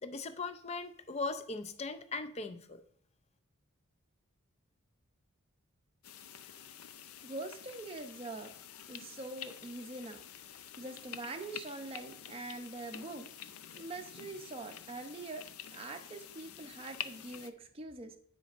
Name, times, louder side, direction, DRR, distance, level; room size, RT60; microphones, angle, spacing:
voice 1, 0.0-2.8, left 3 dB, 30° left, 10 dB, 0.5 m, -39 dB
sound 1, 6.0-17.5, left 9 dB, 90° left, 0.5 m, -48 dB
voice 2, 7.2-8.5 8.9-10.2 10.5-13.3 13.7-15.5 15.7-18.2, right 2 dB, 25° right, 5 dB, 0.6 m, -44 dB
10.0 x 5.2 x 2.5 m, 0.65 s
head